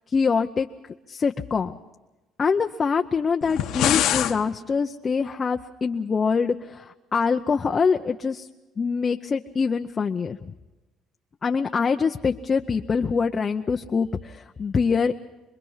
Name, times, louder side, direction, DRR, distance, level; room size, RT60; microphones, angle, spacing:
voice 1, 0.1-0.7 1.1-1.7 2.4-8.5 8.8-10.5 11.4-15.1, left 5 dB, 30° left, 5 dB, 0.7 m, -24 dB
sound 1, 3.4-4.4, left 11 dB, 75° left, 1.2 m, -23 dB
26.0 x 21.5 x 5.7 m, 1.1 s
cardioid pair, 110°, 0 cm